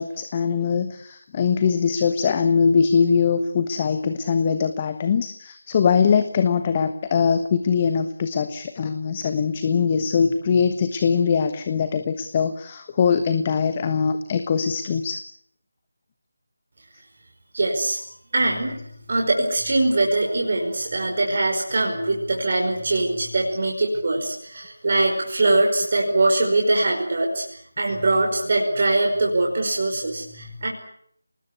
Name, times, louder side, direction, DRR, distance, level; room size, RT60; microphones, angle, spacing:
voice 1, 0.0-15.2, left 6 dB, 25° left, 10 dB, 1.2 m, -22 dB
voice 2, 17.5-18.0 18.3-18.8 19.1-27.4 27.8-30.7, right 2 dB, 45° right, 0 dB, 5.1 m, -22 dB
28.0 x 20.0 x 8.4 m, 0.66 s
figure-of-eight pair, 160°, 0 cm